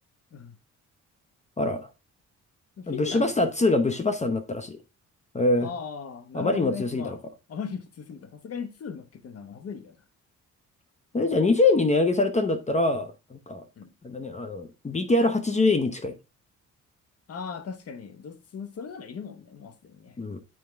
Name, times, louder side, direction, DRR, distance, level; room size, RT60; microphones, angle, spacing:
voice 1, 1.6-1.9 2.9-4.8 5.3-5.7 6.3-7.2 11.1-13.6 14.0-16.1 20.2-20.4, left 2 dB, 25° left, 0.8 m, -24 dB
voice 2, 2.8-3.5 5.6-7.2 7.5-10.0 13.8-13.9 17.3-20.2, left 6 dB, 55° left, 1.1 m, -38 dB
7.6 x 4.6 x 3.4 m
cardioid pair, 90°, 30 cm